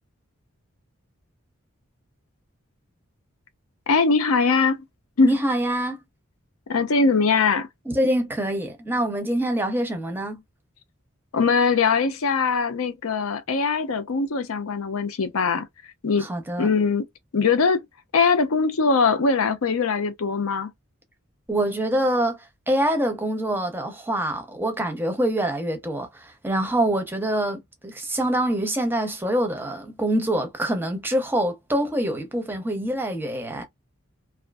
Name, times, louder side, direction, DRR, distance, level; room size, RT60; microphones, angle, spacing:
voice 1, 3.9-4.8 5.2-5.3 6.7-7.7 11.3-15.7 16.0-16.3 16.6-17.1 17.3-17.8 18.1-20.7, left 4 dB, 80° left, 0.6 m, -21 dB
voice 2, 5.2-6.0 7.9-10.4 16.2-16.7 21.5-22.4 22.7-33.6, right 1 dB, 10° right, 0.6 m, -25 dB
2.6 x 2.4 x 2.2 m
head